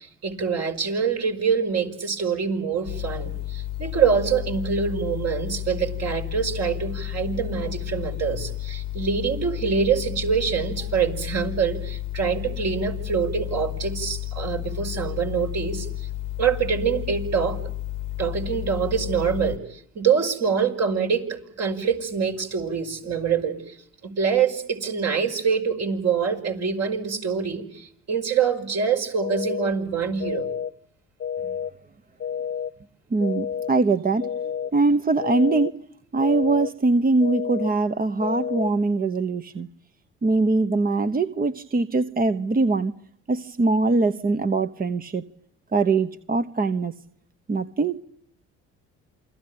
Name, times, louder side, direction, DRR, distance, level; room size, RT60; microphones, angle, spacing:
voice 1, 0.0-16.1 16.4-17.6 18.2-23.8 24.0-30.5, right 6 dB, 55° right, 3 dB, 5.7 m, -25 dB
sound 1, 2.9-19.6, left 15 dB, 80° left, 1.2 m, -32 dB
sound 2, 29.2-29.7 30.2-30.7 31.2-31.7 32.2-32.7 33.2-33.7 34.2-34.7 35.2-35.7 36.2-36.7 37.2-37.7 38.2-38.7, left 8 dB, 35° left, 1.0 m, -30 dB
voice 2, 33.1-34.3 34.7-35.7 36.1-39.7 40.2-42.9 43.3-45.2 45.7-46.9 47.5-48.0, right 3 dB, 30° right, 10 dB, 1.1 m, -22 dB
28.5 x 21.5 x 8.8 m, 0.66 s
supercardioid pair, 75°, 31 cm